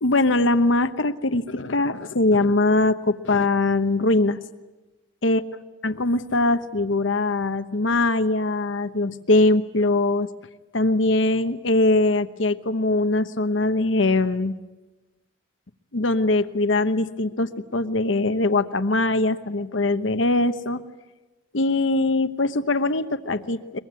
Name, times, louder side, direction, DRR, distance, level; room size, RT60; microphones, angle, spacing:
voice 1, 0.0-4.4 5.2-5.4 5.8-10.3 10.7-14.5 15.9-20.8 21.5-23.8, left 2 dB, 80° left, 11 dB, 1.0 m, -22 dB
23.5 x 22.0 x 9.5 m, 1.1 s
head